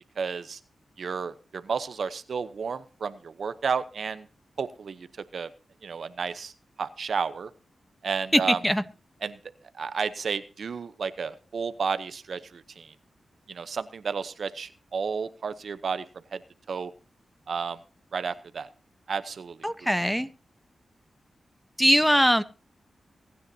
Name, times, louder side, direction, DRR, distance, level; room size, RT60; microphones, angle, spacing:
voice 1, 0.2-0.6 1.0-4.3 4.6-5.1 5.3-5.5 5.8-6.5 6.8-7.5 8.0-8.6 9.2-9.4 9.7-12.9 13.5-16.0 16.3-16.4 16.7-16.9 17.5-17.8 18.1-18.7 19.1-19.6, right 5 dB, 70° right, 12 dB, 0.8 m, -32 dB
voice 2, 8.3-8.8 19.6-20.3 21.8-22.4, equal, ahead, 13 dB, 1.0 m, -21 dB
23.0 x 9.6 x 2.8 m, 0.35 s
cardioid pair, 55°, 0 cm